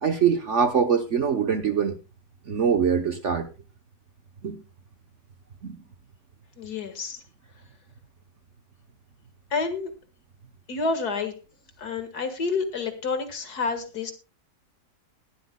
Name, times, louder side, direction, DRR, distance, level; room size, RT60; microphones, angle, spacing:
voice 1, 0.0-2.0 2.5-3.5 4.4-4.6 5.6-5.8, right 7 dB, 50° right, 7 dB, 1.1 m, -23 dB
voice 2, 6.6-7.2 9.5-9.9 10.7-11.3 11.8-14.1, left 4 dB, 60° left, 8 dB, 2.1 m, -29 dB
20.0 x 12.0 x 2.2 m, 0.29 s
omnidirectional pair, 1.9 m